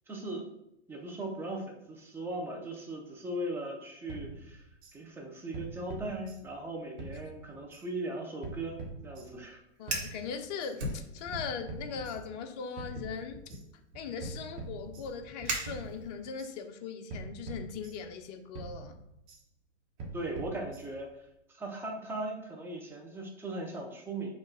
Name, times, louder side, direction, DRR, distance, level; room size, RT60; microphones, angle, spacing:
voice 1, 0.1-0.5 0.9-4.7 4.9-9.6 20.1-21.1 21.5-24.3, right 1 dB, 5° right, 1 dB, 0.6 m, -38 dB
sound 1, 4.1-5.0 5.5-6.7 7.0-7.8 8.4-9.5 9.9-10.7 11.3-12.5 12.8-13.6 14.2-15.4 15.7-16.5 17.1-18.3 18.5-19.4 20.0-21.1, right 3 dB, 35° right, 1.2 m, -44 dB
voice 2, 9.8-13.4 13.9-19.0, left 6 dB, 35° left, 6 dB, 0.5 m, -39 dB
Fire, 9.8-10.2 10.8-11.6 11.9-12.3 12.9-16.3, right 1 dB, 80° right, 1.4 m, -39 dB
4.5 x 2.4 x 4.7 m, 0.82 s
hypercardioid pair, 120°, 36 cm